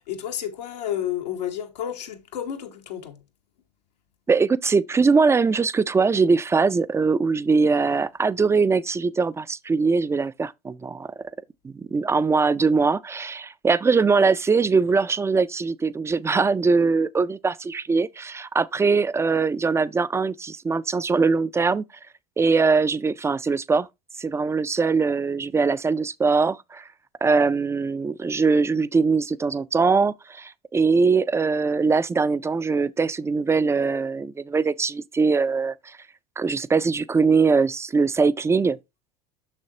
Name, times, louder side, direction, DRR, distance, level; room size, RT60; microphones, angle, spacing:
voice 1, 0.1-3.2, left 10 dB, 85° left, 1.1 m, -31 dB
voice 2, 4.3-11.1 11.6-21.8 22.4-23.9 24.2-26.9 27.2-36.0 36.4-38.8, right 4 dB, 15° right, 0.3 m, -22 dB
6.6 x 6.3 x 2.8 m
hypercardioid pair, 90°, 20 cm